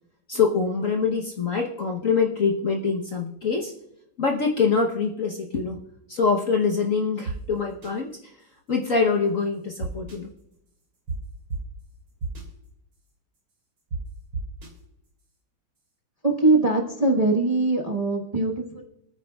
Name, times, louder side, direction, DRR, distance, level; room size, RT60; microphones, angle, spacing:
voice 1, 0.3-3.7 4.2-5.8 6.1-8.3 8.7-10.3, left 5 dB, 50° left, 1 dB, 1.1 m, -24 dB
sound 1, 7.3-7.4 7.8-7.9 9.8-10.2 11.1-11.2 11.5-11.6 12.2-12.4 13.9-14.0 14.3-14.7, right 3 dB, 75° right, 3.9 m, -30 dB
voice 2, 16.2-18.8, right 2 dB, 25° right, 0 dB, 1.0 m, -22 dB
27.5 x 9.5 x 2.3 m, 0.82 s
omnidirectional pair, 2.3 m